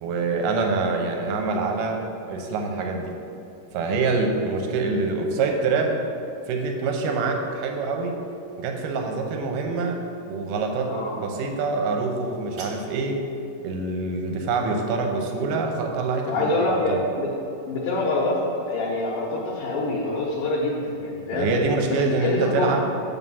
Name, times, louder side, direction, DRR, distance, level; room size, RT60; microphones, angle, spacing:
voice 1, 0.0-2.0 2.3-3.1 3.7-6.0 6.5-8.1 8.6-13.2 13.6-17.0 21.3-23.1, right 3 dB, 80° right, 3 dB, 2.3 m, -25 dB
voice 2, 10.8-11.2 16.3-17.3 17.7-21.5 21.9-22.7, left 2 dB, 75° left, -6 dB, 2.6 m, -25 dB
sound 1, 12.1-13.1, right 3 dB, 60° right, 1.6 m, -45 dB
7.1 x 5.5 x 5.5 m, 2.6 s
omnidirectional pair, 4.0 m